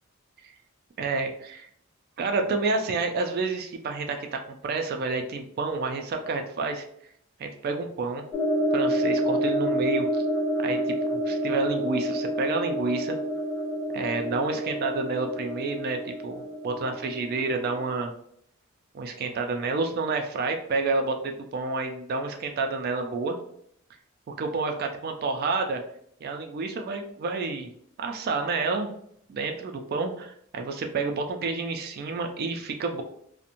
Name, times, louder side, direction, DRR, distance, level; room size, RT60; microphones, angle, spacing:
voice 1, 1.0-1.7 2.2-6.9 7.4-8.3 8.7-10.2 10.6-13.2 13.9-18.1 18.9-23.4 24.3-25.8 26.2-27.7 28.0-28.9 29.3-33.0, right 3 dB, 45° right, 4 dB, 0.3 m, -29 dB
sound 1, 8.3-17.8, equal, 5° left, 0.9 m, -28 dB
2.8 x 2.1 x 2.5 m, 0.68 s
head